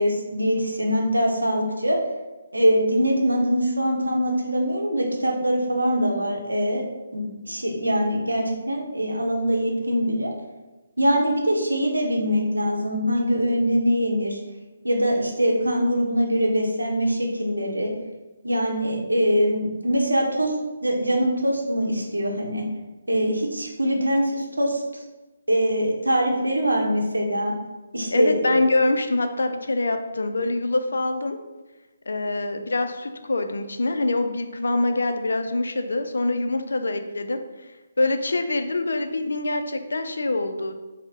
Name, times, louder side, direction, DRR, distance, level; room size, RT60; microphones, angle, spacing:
voice 1, 0.0-2.0 2.5-6.8 7.1-10.3 11.0-14.4 14.8-17.9 18.4-20.5 20.8-22.6 23.1-24.8 25.5-27.5 27.9-28.6, equal, 80° right, 0 dB, 0.7 m, -23 dB
voice 2, 28.1-31.4 32.1-37.4 38.0-40.8, left 2 dB, 65° left, 7 dB, 0.3 m, -24 dB
4.4 x 2.0 x 2.8 m, 1.1 s
figure-of-eight pair, 140°, 0 cm